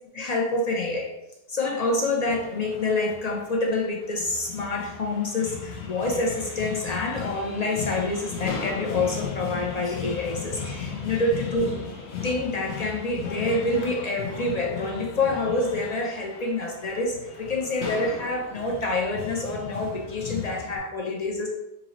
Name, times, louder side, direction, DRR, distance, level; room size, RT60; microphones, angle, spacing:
voice 1, 0.1-1.1 1.5-11.6 12.2-21.5, left 2 dB, 50° left, 0 dB, 0.5 m, -27 dB
sound 1, 2.3-20.8, left 5 dB, 80° left, 1.0 m, -36 dB
4.0 x 2.7 x 2.9 m, 0.87 s
omnidirectional pair, 1.1 m